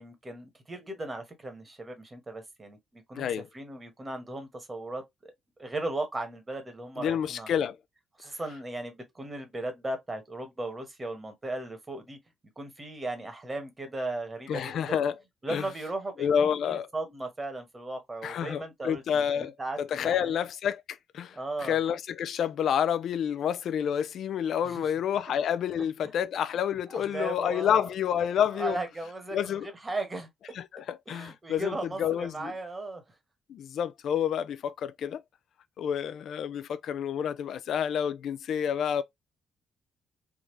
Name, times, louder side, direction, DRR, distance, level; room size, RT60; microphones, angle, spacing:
voice 1, 0.0-5.3 5.6-7.5 8.2-12.2 12.6-15.0 15.4-20.3 21.3-21.8 24.6-24.8 26.9-27.9 28.5-30.3 31.1-33.0, right 2 dB, 25° right, 1.3 m, -37 dB
voice 2, 7.0-7.8 14.5-15.1 15.5-15.6 16.2-16.9 18.2-28.8 29.3-29.7 30.5-32.5 33.5-35.2 35.8-39.0, left 8 dB, 70° left, 0.3 m, -29 dB
3.5 x 2.5 x 3.1 m
cardioid pair, 90°, 0 cm